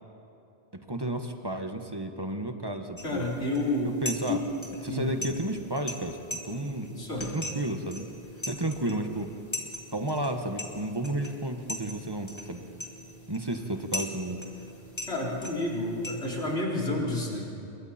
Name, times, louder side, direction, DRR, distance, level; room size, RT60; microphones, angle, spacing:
voice 1, 0.7-3.3 3.8-4.4 4.8-6.9 7.2-8.1 8.5-9.3 9.9-12.7 13.3-14.4, right 1 dB, 20° right, 5 dB, 1.4 m, -32 dB
voice 2, 3.0-3.9 4.3-4.4 4.9-5.1 6.9-7.3 15.1-17.4, left 2 dB, 70° left, -3 dB, 4.2 m, -30 dB
sound 1, 3.0-16.6, left 1 dB, 25° left, 2.4 m, -41 dB
28.0 x 22.5 x 4.4 m, 2.9 s
omnidirectional pair, 1.1 m